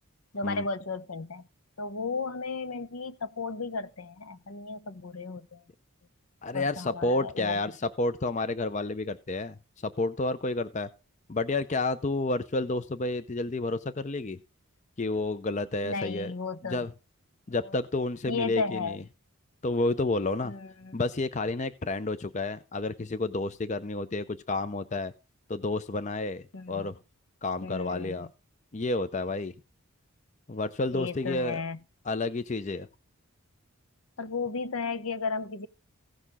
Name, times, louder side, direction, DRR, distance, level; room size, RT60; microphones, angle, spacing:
voice 1, 0.3-1.5 1.8-5.6 6.5-7.6 15.8-16.9 17.6-17.8 18.3-19.0 20.4-21.0 26.5-26.9 27.6-28.3 30.9-31.8 34.2-35.7, left 4 dB, 70° left, 0.8 m, -34 dB
voice 2, 6.4-10.9 11.3-14.4 15.0-16.3 16.6-16.9 17.5-19.0 19.6-20.5 20.9-25.1 25.5-27.0 27.4-28.3 28.7-29.5 30.5-31.6 32.1-32.9, left 2 dB, 30° left, 0.5 m, -30 dB
16.0 x 6.4 x 3.6 m
head